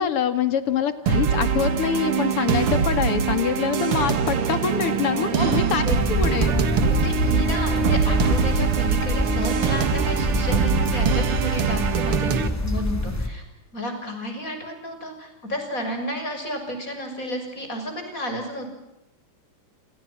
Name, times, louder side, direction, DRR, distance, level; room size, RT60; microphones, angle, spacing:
voice 1, 0.0-5.8 6.1-6.5, left 8 dB, 90° left, 11 dB, 2.9 m, -25 dB
sound 1, 1.1-12.5, right 6 dB, 90° right, 2.7 m, -23 dB
voice 2, 5.1-6.0 6.8-13.4 13.7-18.7, equal, 35° left, 5 dB, 7.2 m, -31 dB
sound 2, 5.9-13.3, left 1 dB, 5° left, 3.5 m, -26 dB
29.0 x 28.0 x 6.1 m, 0.89 s
omnidirectional pair, 2.4 m